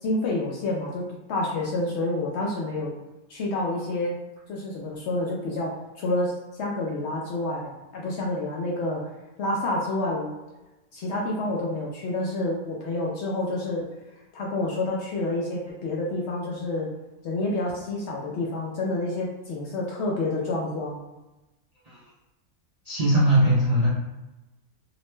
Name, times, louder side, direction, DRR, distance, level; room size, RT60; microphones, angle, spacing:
voice 1, 0.0-1.0 1.3-2.9 3.3-4.1 4.5-9.0 9.4-10.3 10.9-13.9 14.3-16.9 17.2-21.0, left 2 dB, 65° left, -3 dB, 0.7 m, -28 dB
voice 2, 22.8-23.9, right 1 dB, 75° right, -7 dB, 0.3 m, -20 dB
2.8 x 2.1 x 3.0 m, 1.0 s
omnidirectional pair, 1.5 m